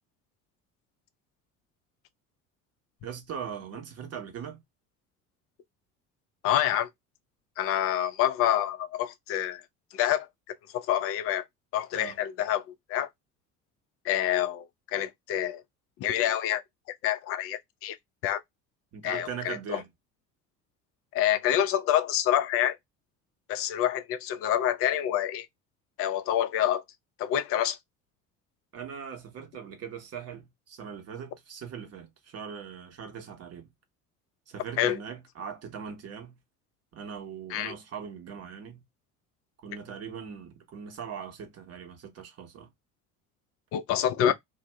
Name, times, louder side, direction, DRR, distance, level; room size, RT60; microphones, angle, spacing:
voice 1, 3.0-4.6 11.9-12.2 18.9-19.9 28.7-33.7 34.5-36.4 36.9-38.8 39.6-42.7, right 7 dB, 35° right, 0.9 m, -40 dB
voice 2, 6.4-6.9 7.6-9.6 9.9-10.3 10.7-11.4 11.7-12.6 12.9-13.1 14.0-14.7 14.9-15.6 16.0-16.6 17.0-18.0 18.2-18.4 19.0-19.8 21.1-22.8 23.5-25.5 26.0-26.8 27.2-27.8 34.8-35.0 37.5-37.7 43.7-44.3, left 11 dB, 35° left, 0.4 m, -27 dB
2.5 x 2.0 x 3.2 m
figure-of-eight pair, 60°, 45 cm